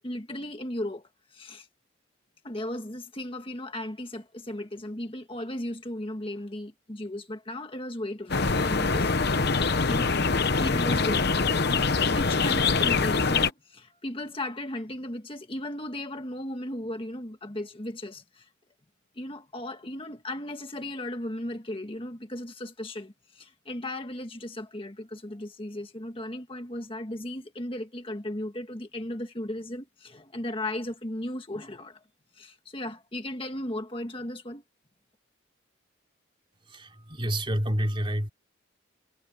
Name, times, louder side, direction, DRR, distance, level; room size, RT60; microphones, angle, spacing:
voice 1, 0.0-1.7 2.4-9.1 9.9-10.2 10.6-18.5 19.2-32.0 32.3-34.6, left 1 dB, 25° left, 1.6 m, -36 dB
sound 1, 8.3-13.5, left 4 dB, 50° left, 1.0 m, -24 dB
voice 2, 36.7-38.3, equal, 25° right, 3.2 m, -28 dB
head